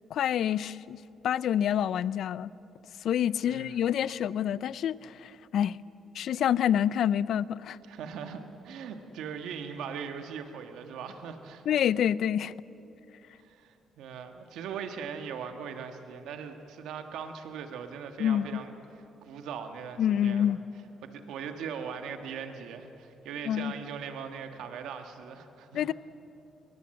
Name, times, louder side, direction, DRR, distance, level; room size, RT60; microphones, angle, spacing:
voice 1, 0.1-1.0 1.2-2.5 3.0-5.8 6.1-7.8 11.7-12.5 18.2-18.6 20.0-20.6 23.5-23.7 25.7-25.9, left 9 dB, 70° left, 19 dB, 0.5 m, -27 dB
voice 2, 3.4-3.9 7.9-11.6 13.4-20.5 21.0-25.9, right 7 dB, 85° right, 6 dB, 1.5 m, -40 dB
22.5 x 19.5 x 7.7 m, 2.9 s
cardioid pair, 90°, 0 cm